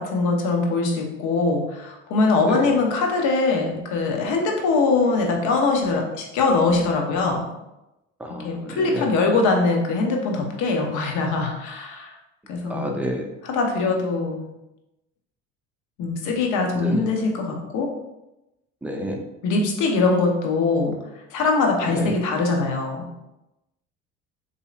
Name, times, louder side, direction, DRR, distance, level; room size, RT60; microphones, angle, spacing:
voice 1, 0.0-7.4 8.3-12.1 12.5-12.9 13.4-14.5 16.0-17.9 19.4-21.0 21.3-23.1, left 3 dB, 70° left, 2 dB, 0.8 m, -22 dB
voice 2, 8.2-9.1 12.7-13.3 16.7-17.0 18.8-19.2 21.9-22.2, equal, 5° right, 1 dB, 0.5 m, -30 dB
4.0 x 2.8 x 2.4 m, 0.93 s
supercardioid pair, 95°, 31 cm